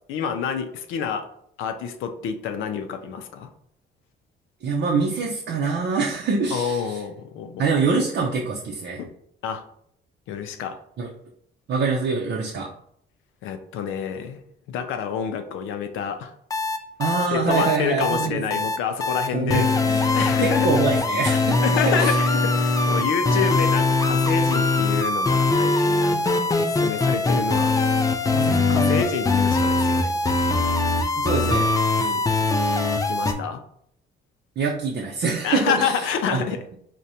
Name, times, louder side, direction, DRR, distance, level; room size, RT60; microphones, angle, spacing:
voice 1, 0.1-1.3 1.6-3.5 6.5-7.7 9.0-9.1 9.4-9.6 10.3-10.8 13.4-16.3 17.3-19.6 20.1-20.7 21.3-27.7 28.3-30.1 32.0-32.3 33.1-33.6 35.4-36.6, left 7 dB, 85° left, 7 dB, 0.4 m, -28 dB
voice 2, 4.6-7.0 7.6-9.0 11.0-11.1 11.7-12.7 17.0-18.6 19.3-22.2 23.3-23.4 28.3-29.4 31.2-31.7 31.9-32.1 34.6-35.9 36.3-36.5, right 4 dB, 60° right, -2 dB, 0.6 m, -25 dB
sound 1, 16.5-33.3, left 3 dB, 15° left, 0.4 m, -21 dB
4.8 x 2.2 x 2.7 m, 0.68 s
cardioid pair, 90°, 20 cm